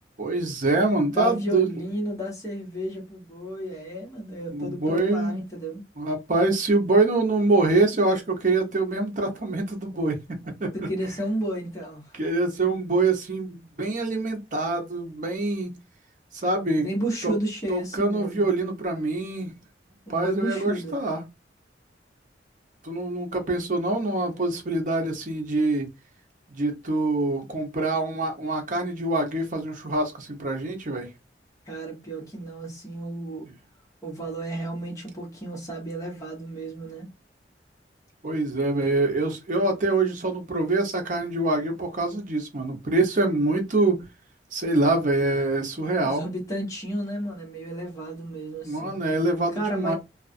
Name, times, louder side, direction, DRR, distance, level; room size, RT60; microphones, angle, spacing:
voice 1, 0.2-1.7 4.5-5.4 6.0-10.2 10.6-10.7 12.1-15.7 16.3-16.9 17.2-17.3 17.7-19.5 20.1-21.2 22.8-25.9 26.5-31.1 38.2-44.0 44.5-46.2 48.6-49.9, right 2 dB, 50° right, 0.8 m, -25 dB
voice 2, 1.1-5.8 10.7-12.1 16.8-18.5 20.1-21.0 31.7-33.5 34.0-37.1 46.0-49.0 49.5-49.9, right 1 dB, 20° left, 1.1 m, -32 dB
2.4 x 2.4 x 2.5 m
head